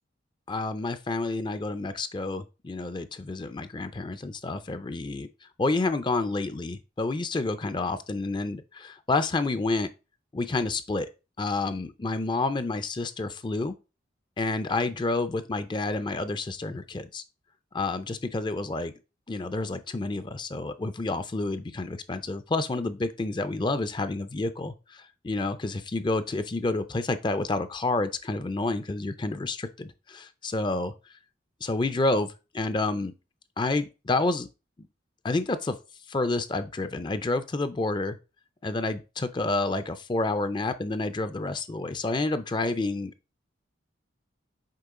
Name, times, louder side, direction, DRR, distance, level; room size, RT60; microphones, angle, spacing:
voice 1, 0.5-9.9 10.3-11.1 11.4-13.8 14.4-17.2 17.7-18.9 19.3-30.9 31.6-33.1 33.6-34.5 35.2-35.8 36.1-38.2 38.6-43.1, left 2 dB, 25° left, 0.4 m, -29 dB
6.6 x 4.5 x 3.6 m
head